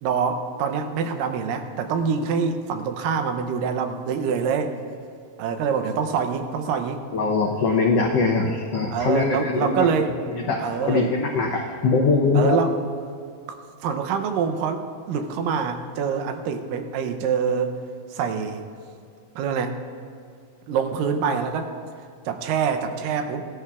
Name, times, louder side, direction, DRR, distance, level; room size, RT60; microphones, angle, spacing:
voice 1, 0.0-4.8 5.4-7.0 8.9-10.1 10.6-11.1 12.3-12.7 13.8-17.7 18.1-18.6 19.4-19.8 20.7-21.7 22.3-23.4, right 6 dB, 80° right, 7 dB, 2.4 m, -25 dB
voice 2, 7.1-9.9 10.3-12.6, left 4 dB, 85° left, -1 dB, 1.4 m, -22 dB
19.0 x 12.5 x 2.4 m, 2.4 s
omnidirectional pair, 4.0 m